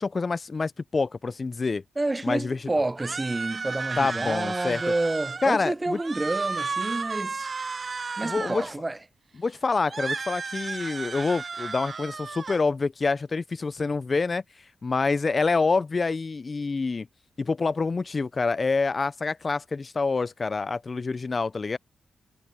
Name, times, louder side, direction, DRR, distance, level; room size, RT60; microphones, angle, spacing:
voice 1, 0.0-1.8 2.2-2.7 4.0-4.8 5.4-6.0 8.2-8.7 9.4-14.4 14.8-17.1 17.4-21.8, left 4 dB, 45° left, 0.8 m, -27 dB
voice 2, 2.0-7.5 8.2-9.0, right 2 dB, 25° right, 0.8 m, -29 dB
sound 1, 3.0-5.6 5.9-8.7 9.9-12.6, right 4 dB, 50° right, 0.5 m, -33 dB
supercardioid pair, 45°, 0 cm